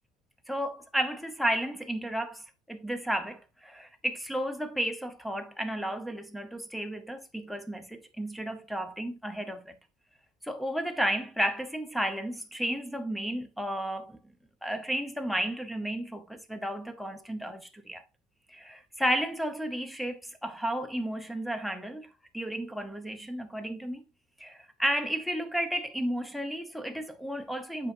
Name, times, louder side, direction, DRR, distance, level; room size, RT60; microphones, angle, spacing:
voice 1, 0.5-9.7 10.4-14.2 14.6-18.0 18.5-22.1 22.3-24.0 24.4-27.9, equal, ahead, 0.9 m, -33 dB
8.1 x 5.8 x 2.7 m
cardioid pair, 125°, 17 cm